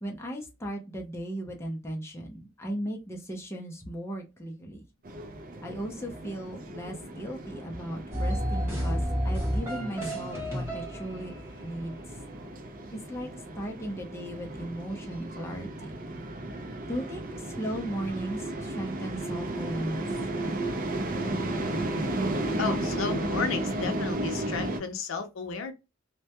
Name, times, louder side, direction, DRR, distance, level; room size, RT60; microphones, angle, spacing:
voice 1, 0.0-4.8 5.6-11.3 11.6-12.0 12.9-15.9 16.9-20.1, right 1 dB, 15° left, 0.5 m, -36 dB
sound 1, 5.0-24.8, right 1 dB, 45° right, 0.5 m, -34 dB
sound 2, 8.1-11.4, equal, 15° right, 0.9 m, -30 dB
voice 2, 22.6-25.7, left 4 dB, 85° left, 0.5 m, -33 dB
2.1 x 2.1 x 2.8 m
head